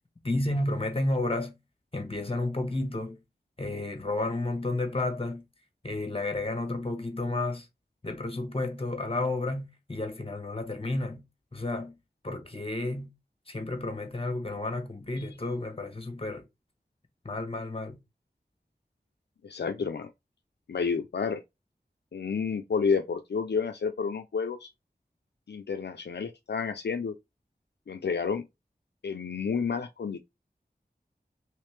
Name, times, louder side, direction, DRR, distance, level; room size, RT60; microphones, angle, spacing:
voice 1, 0.2-1.6 1.9-3.2 3.6-5.4 5.8-7.7 8.0-11.2 11.5-11.9 12.2-13.1 13.5-16.4 17.2-18.0, left 2 dB, 35° left, 1.1 m, -31 dB
voice 2, 19.4-20.1 20.7-21.4 22.1-24.7 25.5-27.1 27.9-28.5 29.0-30.2, left 5 dB, 80° left, 0.4 m, -30 dB
3.2 x 3.1 x 3.2 m
wide cardioid pair, 45°, 17 cm